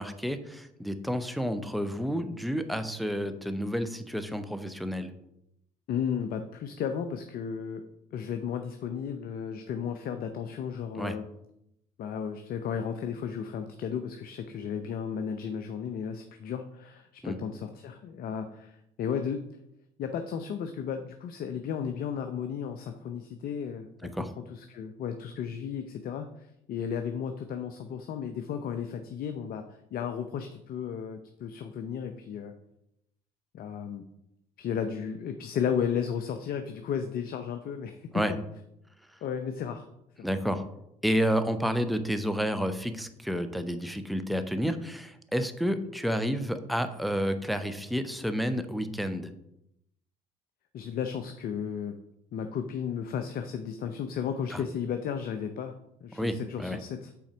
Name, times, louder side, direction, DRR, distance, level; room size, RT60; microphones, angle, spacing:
voice 1, 0.0-5.1 11.0-11.2 17.2-17.4 24.1-24.3 38.1-38.3 40.2-40.7 41.0-49.3 54.5-54.6 56.1-56.8, equal, ahead, 9 dB, 0.8 m, -30 dB
voice 2, 5.9-7.8 8.1-11.2 12.0-19.5 20.0-32.5 33.5-34.1 34.6-38.4 39.2-39.9 40.2-40.3 50.7-52.0 52.3-55.7 56.0-57.1, left 7 dB, 60° left, 7 dB, 0.6 m, -34 dB
5.7 x 4.2 x 6.1 m, 0.80 s
hypercardioid pair, 60°, 17 cm